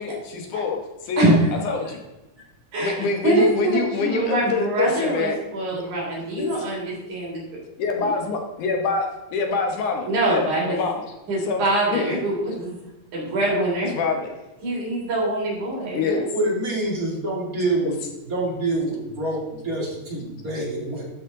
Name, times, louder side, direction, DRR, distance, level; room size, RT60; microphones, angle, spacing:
voice 1, 0.0-1.2 1.6-2.0 2.8-5.4 5.7-5.8 6.3-6.7 7.8-11.0 11.5-12.1 13.9-14.3 15.9-16.3, left 4 dB, 70° left, 3 dB, 2.6 m, -26 dB
voice 2, 3.2-7.4 8.0-8.1 10.1-10.8 11.3-12.8 13.1-13.9 14.6-16.3, right 1 dB, 65° right, -5 dB, 4.9 m, -23 dB
voice 3, 16.3-18.0 18.3-21.0, right 2 dB, 30° right, -4 dB, 2.8 m, -26 dB
12.5 x 6.5 x 3.8 m, 1.0 s
omnidirectional pair, 3.7 m